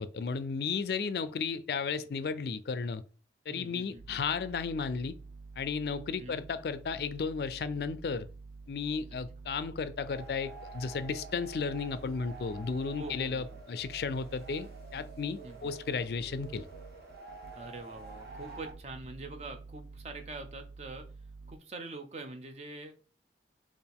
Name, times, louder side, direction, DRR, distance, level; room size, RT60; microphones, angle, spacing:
voice 1, 0.0-3.0 3.5-5.2 5.6-8.3 8.7-16.7, left 5 dB, 60° left, 0.3 m, -34 dB
voice 2, 3.5-4.2 6.2-6.5 13.0-13.6 15.4-15.7 17.5-21.1 21.5-22.9, right 2 dB, 35° right, 0.6 m, -44 dB
sound 1, 4.0-21.6, right 3 dB, 85° right, 0.4 m, -49 dB
sound 2, 10.0-18.7, right 3 dB, 60° right, 1.2 m, -49 dB
4.3 x 2.5 x 3.5 m
head